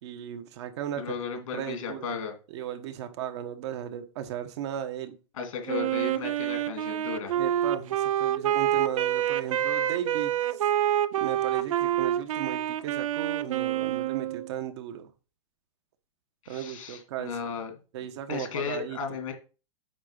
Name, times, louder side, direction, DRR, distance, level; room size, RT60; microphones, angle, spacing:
voice 1, 0.0-2.2 2.5-5.2 7.3-10.7 11.2-15.1 16.5-17.4 17.9-19.0, right 10 dB, 55° right, 1.2 m, -36 dB
voice 2, 1.0-2.3 5.3-7.3 16.4-17.7 18.3-19.3, left 6 dB, 80° left, 2.6 m, -35 dB
Wind instrument woodwind instrument, 5.7-14.5, right 12 dB, 80° right, 0.6 m, -27 dB
8.8 x 3.9 x 5.6 m
supercardioid pair, 155°, 17 cm